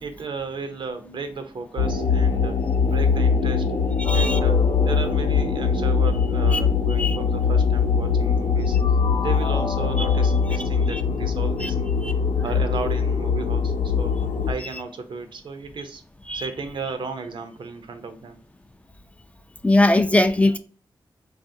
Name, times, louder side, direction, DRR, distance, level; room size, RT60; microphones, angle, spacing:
voice 1, 0.0-2.6 2.9-3.7 4.1-8.8 9.2-11.9 12.4-14.2 14.5-16.0 16.3-18.4, right 4 dB, 70° right, 0.5 m, -34 dB
sound 1, 1.8-14.5, left 5 dB, 90° left, 0.5 m, -22 dB
sound 2, 4.0-7.0 8.8-10.7, left 3 dB, 45° left, 0.8 m, -33 dB
voice 2, 4.0-4.4 6.5-6.6 7.0-7.2 10.0-10.1 10.9-11.0 11.6-11.7 12.0-12.1 16.3-16.4 19.6-20.6, left 2 dB, 15° left, 0.3 m, -20 dB
3.4 x 2.4 x 2.6 m
cardioid pair, 65°, 9 cm